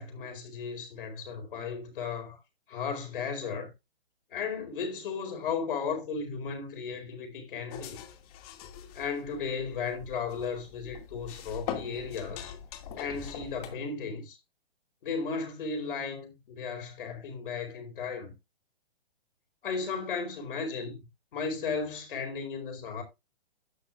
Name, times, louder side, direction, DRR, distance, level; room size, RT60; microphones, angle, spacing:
voice 1, 0.0-2.4 2.7-3.7 4.3-8.0 8.9-12.5 13.0-14.4 15.0-18.3 19.6-23.0, left 5 dB, 55° left, 4.5 m, -35 dB
sound 1, 7.7-13.7, left 8 dB, 35° left, 2.4 m, -42 dB
12.0 x 8.6 x 2.4 m
hypercardioid pair, 140°, 31 cm